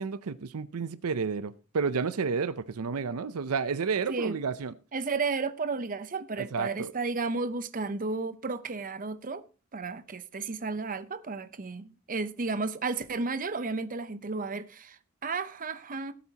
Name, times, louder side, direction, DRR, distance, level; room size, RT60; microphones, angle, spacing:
voice 1, 0.0-4.7 6.4-6.9, right 5 dB, 75° right, 0.6 m, -31 dB
voice 2, 4.9-9.4 9.7-16.1, right 4 dB, 40° right, 0.7 m, -33 dB
17.5 x 8.4 x 2.9 m
head